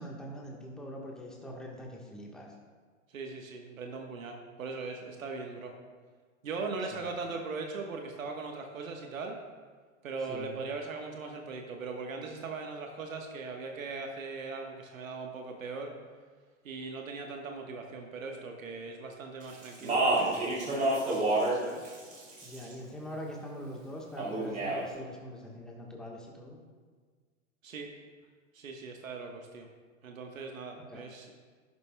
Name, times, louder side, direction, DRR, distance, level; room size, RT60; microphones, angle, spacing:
voice 1, 0.0-2.5 6.9-7.1 10.3-10.6 22.4-26.6 30.9-31.0, equal, ahead, -2 dB, 1.2 m, -43 dB
voice 2, 3.1-5.7 6.4-9.4 10.0-15.9 16.6-21.9 27.6-27.9 28.5-29.7 30.0-31.3, right 4 dB, 80° right, 2 dB, 1.3 m, -40 dB
Speech, 19.6-21.6 21.9-22.7 24.2-24.8, right 2 dB, 20° right, 3.0 m, -28 dB
11.0 x 11.0 x 2.2 m, 1.5 s
hypercardioid pair, 110°, 40 cm